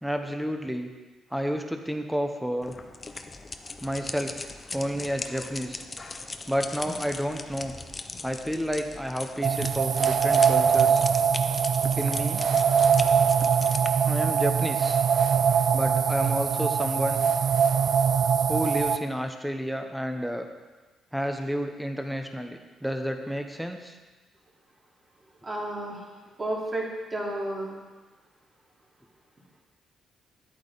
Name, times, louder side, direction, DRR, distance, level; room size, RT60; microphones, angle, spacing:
voice 1, 0.0-0.9 1.3-2.7 3.8-4.3 4.7-5.8 6.5-7.7 8.2-11.0 12.0-12.4 14.1-15.0 15.7-17.2 18.5-20.5 21.1-23.9, equal, ahead, 5 dB, 1.0 m, -30 dB
sound 1, 2.6-13.9, left 3 dB, 30° left, 0.7 m, -39 dB
sound 2, 9.4-19.0, right 7 dB, 55° right, 0.4 m, -23 dB
voice 2, 25.4-26.0 26.4-27.7, right 1 dB, 30° right, -4 dB, 2.9 m, -31 dB
10.5 x 8.7 x 4.1 m, 1.3 s
cardioid pair, 90°, 0 cm